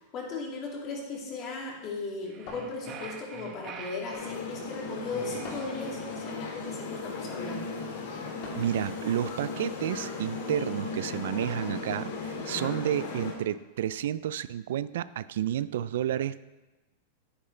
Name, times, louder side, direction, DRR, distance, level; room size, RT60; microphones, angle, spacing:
voice 1, 0.1-7.7 12.5-12.7, left 3 dB, 35° left, -2 dB, 2.6 m, -37 dB
sound 1, 2.2-4.4 5.1-6.3, right 6 dB, 35° right, 1.0 m, -45 dB
sound 2, 2.5-3.3 5.4-5.9 8.4-8.8 11.4-11.8, left 3 dB, 50° left, 2.9 m, -45 dB
sound 3, 4.1-13.3, left 4 dB, 70° left, 2.0 m, -37 dB
voice 2, 8.6-16.5, right 10 dB, 75° right, 16 dB, 0.3 m, -31 dB
9.5 x 9.4 x 3.3 m, 1.1 s
supercardioid pair, 140°, 0 cm